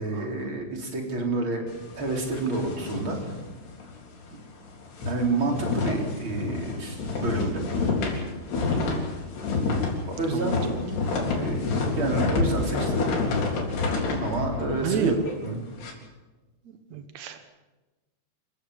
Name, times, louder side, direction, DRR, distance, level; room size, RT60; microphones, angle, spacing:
voice 1, 0.0-1.6 2.0-3.2 5.0-7.6 10.1-10.6 11.3-11.7 12.0-13.0 14.2-15.2 15.4-15.6, right 3 dB, 30° right, 1 dB, 4.2 m, -29 dB
sound 1, 1.7-3.9 4.3-4.4 4.7-15.9, left 3 dB, 65° left, 5.9 m, -28 dB
voice 2, 10.3-10.7 14.8-15.1 16.9-17.4, right 8 dB, 85° right, 7 dB, 1.5 m, -29 dB
28.5 x 15.0 x 8.2 m, 1.2 s
omnidirectional pair, 5.2 m